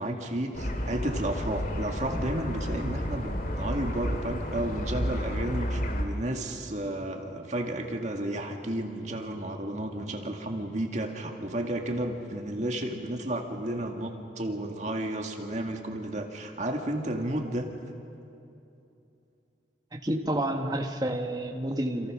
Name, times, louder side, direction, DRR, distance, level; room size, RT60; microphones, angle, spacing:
voice 1, 0.0-17.7, right 1 dB, 40° right, 3 dB, 2.2 m, -32 dB
sound 1, 0.5-6.0, equal, 45° left, 2.4 m, -31 dB
voice 2, 19.9-22.1, right 1 dB, 20° right, 3 dB, 1.6 m, -29 dB
28.5 x 27.5 x 6.4 m, 2.8 s
head